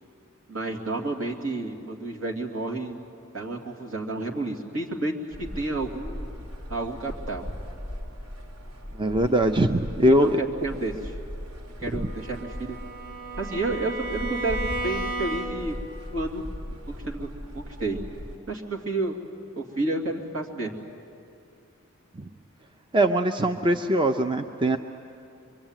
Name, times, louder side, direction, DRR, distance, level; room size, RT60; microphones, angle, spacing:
voice 1, 0.5-3.0 3.3-6.3 6.7-7.5 10.0-11.1 11.8-12.8 13.4-15.7 16.1-16.4 16.9-17.3 17.5-18.0 18.5-19.2 19.5-20.7, right 2 dB, 70° right, 0 dB, 2.7 m, -30 dB
sound 1, 5.3-18.4, left 1 dB, 85° right, 2.0 m, -38 dB
voice 2, 8.9-10.4 11.9-12.1 22.2-22.3 22.9-24.8, right 1 dB, 20° right, 7 dB, 0.6 m, -22 dB
Bowed string instrument, 12.0-15.8, right 2 dB, 45° right, 3.8 m, -34 dB
24.5 x 23.5 x 9.0 m, 2.6 s
head